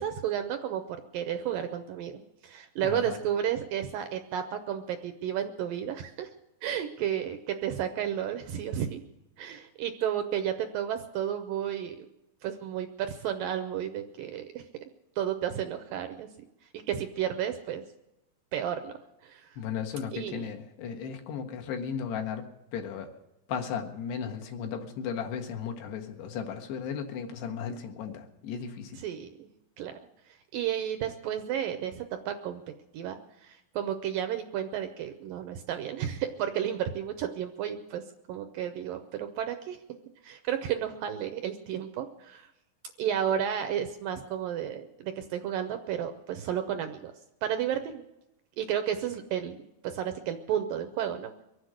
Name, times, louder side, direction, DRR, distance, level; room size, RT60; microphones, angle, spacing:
voice 1, 0.0-6.3 6.6-9.0 9.4-12.0 12.4-14.6 15.2-16.3 16.9-17.8 18.5-19.0 19.2-19.5 20.1-20.5 29.0-29.5 29.8-30.0 30.5-32.6 32.9-38.0 38.3-39.8 40.2-42.5 43.0-47.1 47.4-48.0 48.6-51.3, right 9 dB, 80° right, 7 dB, 2.1 m, -32 dB
voice 2, 2.8-3.2 19.6-22.5 22.7-23.1 23.5-29.0, left 7 dB, 80° left, 3 dB, 3.7 m, -35 dB
24.0 x 8.1 x 6.4 m, 0.92 s
omnidirectional pair, 4.7 m